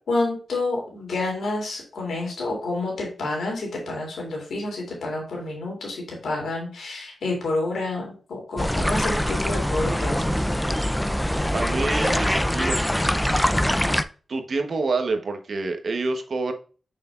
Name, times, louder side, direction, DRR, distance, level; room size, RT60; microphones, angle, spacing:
voice 1, 0.1-10.4, left 2 dB, 80° left, -1 dB, 3.0 m, -29 dB
sound 1, 8.6-14.0, equal, 10° left, 0.6 m, -23 dB
voice 2, 11.5-12.8 14.3-16.5, right 3 dB, 65° right, 6 dB, 1.2 m, -27 dB
6.6 x 5.9 x 2.5 m, 0.38 s
cardioid pair, 50°, 0 cm